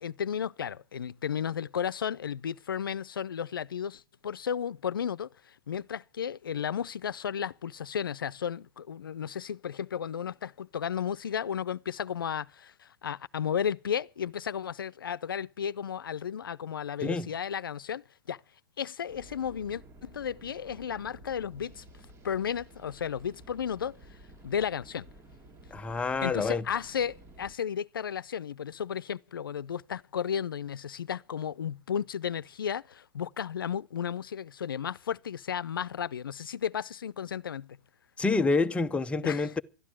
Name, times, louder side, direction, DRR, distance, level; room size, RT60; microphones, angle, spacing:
voice 1, 0.0-18.4 18.8-21.8 22.2-24.0 24.4-25.1 26.2-37.8 39.2-39.5, left 8 dB, 90° left, 0.6 m, -34 dB
sound 1, 19.1-27.5, right 1 dB, 25° right, 1.9 m, -53 dB
voice 2, 25.7-26.6 38.2-39.6, left 3 dB, 10° left, 0.8 m, -27 dB
12.5 x 11.5 x 7.5 m
hypercardioid pair, 120°, 11 cm